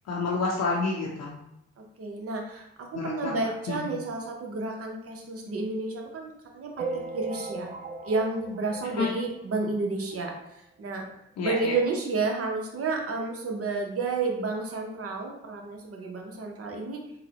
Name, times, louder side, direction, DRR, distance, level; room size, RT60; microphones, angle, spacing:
voice 1, 0.1-1.4 2.9-3.3 3.7-3.8 8.9-9.1 11.4-11.7, left 4 dB, 60° left, -3 dB, 0.7 m, -28 dB
voice 2, 1.8-7.7 8.0-11.0 11.4-17.1, right 3 dB, 50° right, 1 dB, 0.9 m, -31 dB
sound 1, 6.8-9.6 10.1-10.2 10.4-10.5 10.8-10.9 11.8-11.9 12.4-12.5, right 3 dB, 30° right, 0.3 m, -37 dB
3.8 x 2.2 x 2.9 m, 0.79 s
hypercardioid pair, 45°, 30 cm